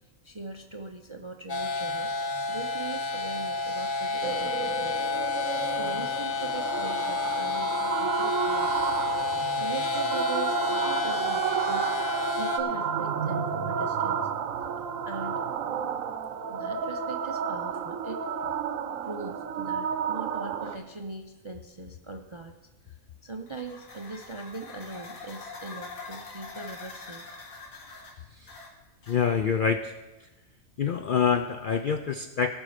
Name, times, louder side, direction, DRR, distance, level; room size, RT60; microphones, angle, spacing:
voice 1, 0.2-5.0 5.5-8.7 9.1-12.1 12.3-14.3 15.1-15.4 16.5-18.2 19.0-22.5 22.9-27.3, right 3 dB, 40° right, 5 dB, 0.4 m, -40 dB
sound 1, 1.5-12.6, left 3 dB, 45° left, 0.9 m, -30 dB
sound 2, 4.2-20.8, right 7 dB, 75° right, 1.1 m, -31 dB
sound 3, 23.4-29.6, left 3 dB, 85° left, 2.0 m, -44 dB
voice 2, 29.1-30.3 30.8-32.5, left 6 dB, 65° left, 7 dB, 0.5 m, -26 dB
18.0 x 6.3 x 5.0 m, 1.1 s
omnidirectional pair, 1.4 m